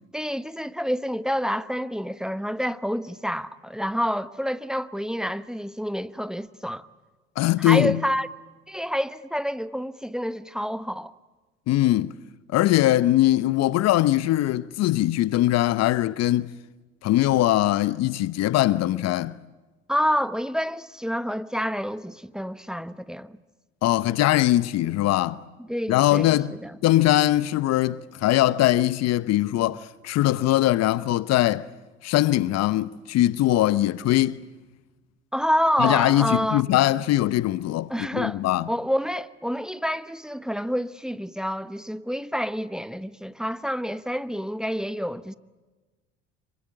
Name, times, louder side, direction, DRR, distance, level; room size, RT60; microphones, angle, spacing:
voice 1, 0.1-6.9 7.6-8.3 8.7-11.1 19.9-23.4 25.6-26.7 35.3-36.6 37.9-38.4 38.7-45.4, equal, ahead, 1.1 m, -28 dB
voice 2, 7.4-8.0 11.7-12.1 12.5-16.5 17.0-19.4 23.8-25.4 25.9-26.5 26.8-31.7 32.0-34.4 35.8-38.7, left 15 dB, 55° left, 0.9 m, -21 dB
26.5 x 24.0 x 8.6 m
hypercardioid pair, 65°, 31 cm